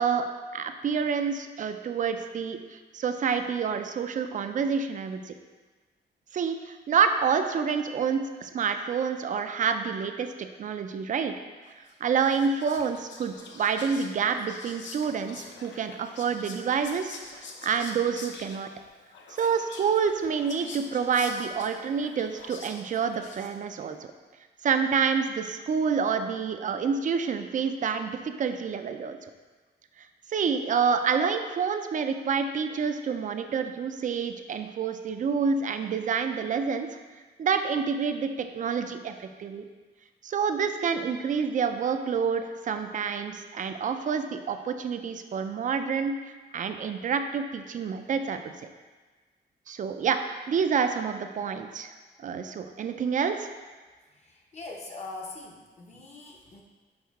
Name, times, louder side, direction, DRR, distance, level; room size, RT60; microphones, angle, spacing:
voice 1, 0.0-5.3 6.3-11.3 12.0-18.7 19.4-24.1 24.6-29.2 30.3-36.9 37.4-39.6 40.2-46.2 46.5-48.4 49.7-50.2 50.5-51.9 52.2-53.5, right 6 dB, 45° right, 8 dB, 0.4 m, -28 dB
Whispering, 11.9-23.8, left 4 dB, 80° left, 0.7 m, -46 dB
voice 2, 54.1-56.6, left 3 dB, 35° left, -1 dB, 0.6 m, -42 dB
6.4 x 4.6 x 3.5 m, 1.4 s
wide cardioid pair, 160°, 19 cm